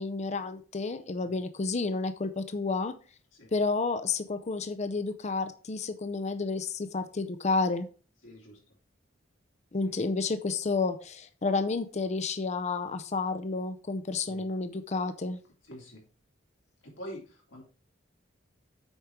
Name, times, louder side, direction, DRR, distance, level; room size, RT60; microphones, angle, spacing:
voice 1, 0.0-2.9 3.5-7.9 9.7-15.4, left 3 dB, 35° left, 10 dB, 0.6 m, -30 dB
voice 2, 8.2-8.8 9.8-9.9 14.3-14.5 15.7-16.0 16.8-17.6, equal, 75° left, -2 dB, 3.3 m, -46 dB
8.1 x 5.1 x 4.5 m, 0.38 s
head